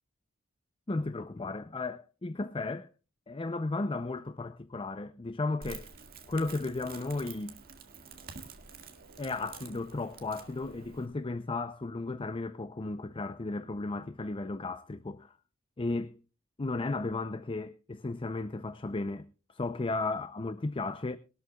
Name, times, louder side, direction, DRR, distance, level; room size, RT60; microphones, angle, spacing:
voice 1, 0.9-2.9 3.3-5.9 6.3-7.6 9.2-15.3 15.8-16.2 16.6-21.2, left 3 dB, 25° left, 0.5 m, -34 dB
Crackle, 5.6-11.1, right 5 dB, 50° right, 2.0 m, -48 dB
21.5 x 12.5 x 2.3 m
head